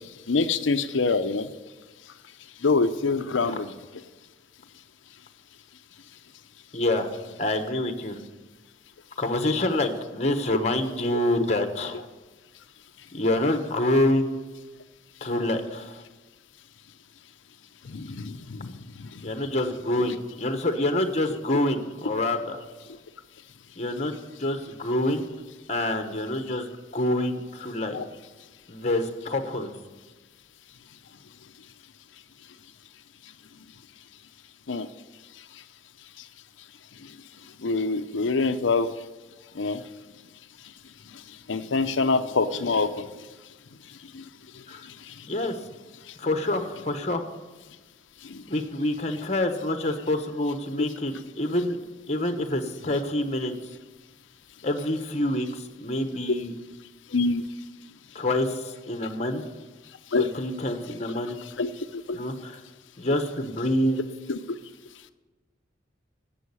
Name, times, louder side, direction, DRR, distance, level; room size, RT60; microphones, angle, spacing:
voice 1, 0.3-1.5 2.6-3.7 11.1-11.2 17.9-18.7 20.0-20.1 27.9-28.0 34.7-34.9 37.6-38.9 39.6-39.8 41.5-42.9 48.3-48.4 50.8-50.9 57.1-57.4 60.1-60.2 61.6-61.7 62.1-62.2 64.3-64.4, left 4 dB, 85° left, 9 dB, 0.7 m, -25 dB
voice 2, 6.7-7.1 7.4-8.2 9.2-12.0 13.1-14.3 15.2-16.0 19.2-22.6 23.8-24.1 24.4-25.3 25.7-26.7 26.9-28.0 28.7-29.7 44.7-44.9 45.3-45.6 46.2-47.3 48.5-51.8 52.1-53.5 54.6-56.5 58.1-59.4 60.2-61.4 62.1-62.6 63.0-64.0, left 1 dB, 35° left, 7 dB, 1.1 m, -26 dB
11.0 x 7.8 x 9.8 m, 1.3 s
head